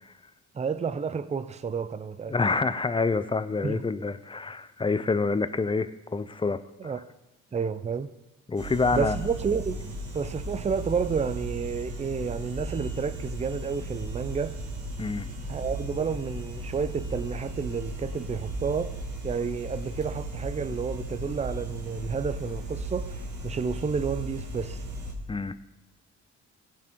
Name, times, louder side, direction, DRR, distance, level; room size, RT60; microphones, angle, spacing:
voice 1, 0.5-2.3 3.6-3.8 6.8-7.1 7.5-8.1 8.9-9.8 10.1-14.6 15.5-19.0 19.2-24.8, right 6 dB, 20° right, 0.6 m, -30 dB
voice 2, 2.3-6.9 8.5-9.2 15.0-15.3 25.3-25.8, left 4 dB, 15° left, 0.6 m, -27 dB
sound 1, 8.6-25.1, right 1 dB, 75° right, 2.4 m, -36 dB
17.0 x 6.3 x 4.6 m
cardioid pair, 90°, 30 cm